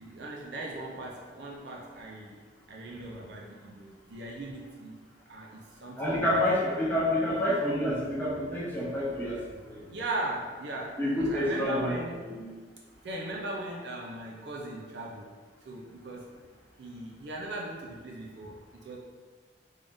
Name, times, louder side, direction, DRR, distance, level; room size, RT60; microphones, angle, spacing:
voice 1, 0.0-6.4 9.9-12.2 13.0-15.3 15.6-16.3 16.8-19.0, right 2 dB, 70° right, -2 dB, 0.5 m, -38 dB
voice 2, 6.0-9.4 11.0-12.0 12.2-12.5, left 1 dB, 10° left, -8 dB, 0.8 m, -28 dB
3.6 x 3.4 x 2.6 m, 1.4 s
head